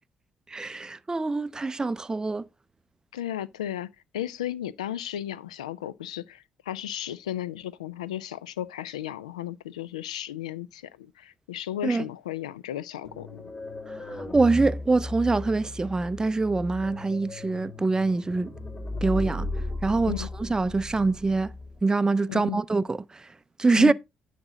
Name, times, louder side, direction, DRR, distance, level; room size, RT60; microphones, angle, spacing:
voice 1, 0.5-2.5 11.8-12.1 14.1-18.5 19.0-19.5 19.8-21.5 21.8-23.3 23.6-23.9, right 3 dB, 20° right, 0.4 m, -24 dB
voice 2, 3.1-3.9 4.1-13.4 20.1-20.3 22.3-22.6 23.8-23.9, left 12 dB, 85° left, 0.3 m, -34 dB
sound 1, 13.0-21.8, left 2 dB, 35° left, 5.8 m, -36 dB
9.7 x 5.2 x 3.7 m
hypercardioid pair, 45°, 4 cm